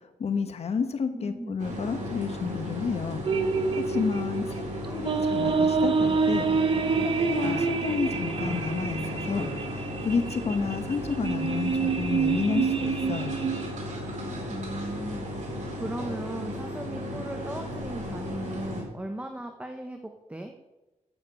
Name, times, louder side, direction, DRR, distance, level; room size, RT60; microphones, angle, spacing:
voice 1, 0.2-3.2 3.7-4.5 4.9-6.5 7.0-13.5, left 5 dB, 55° left, 8 dB, 1.2 m, -30 dB
voice 2, 1.1-1.7 4.5-4.6 4.9-5.2 14.5-20.0 20.3-20.5, right 1 dB, 10° right, 5 dB, 1.0 m, -38 dB
sound 1, 1.6-18.8, left 1 dB, 70° right, 4.3 m, -35 dB
sound 2, 3.2-13.7, right 5 dB, 45° right, 1.2 m, -27 dB
9.6 x 7.4 x 8.4 m, 1.0 s
wide cardioid pair, 110°, 13 cm